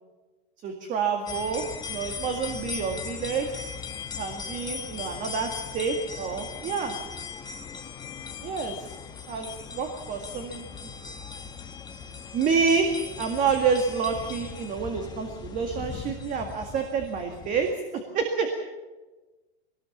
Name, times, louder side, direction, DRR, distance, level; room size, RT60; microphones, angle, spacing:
voice 1, 0.6-3.5 4.2-6.9 8.4-8.8 9.3-10.7 12.3-18.6, right 5 dB, 25° right, 4 dB, 2.0 m, -28 dB
sound 1, 1.3-17.7, left 6 dB, 15° left, 1.2 m, -39 dB
22.5 x 19.5 x 7.2 m, 1.2 s
supercardioid pair, 155°, 32 cm